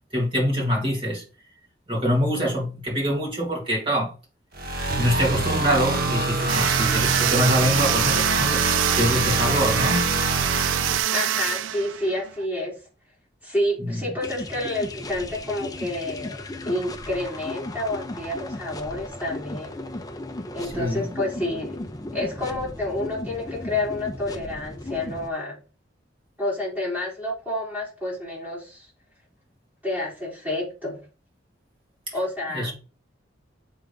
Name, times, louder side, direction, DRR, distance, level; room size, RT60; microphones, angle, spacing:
voice 1, 0.1-1.2 1.9-4.1 5.0-8.6 9.0-10.1 13.8-14.0 20.7-21.1 32.1-32.2 32.5-32.7, equal, 25° right, 3.2 m, -24 dB
sound 1, 4.5-11.0, right 2 dB, 50° right, 1.3 m, -25 dB
sound 2, 6.5-12.5, right 11 dB, 80° right, 0.3 m, -25 dB
voice 2, 11.1-12.8 13.4-19.7 20.5-21.8 22.1-25.6 26.4-28.9 29.8-31.0 32.1-32.7, left 1 dB, 10° right, 4.1 m, -29 dB
sound 3, 14.2-25.3, left 2 dB, 20° left, 0.7 m, -36 dB
7.2 x 4.0 x 5.2 m
head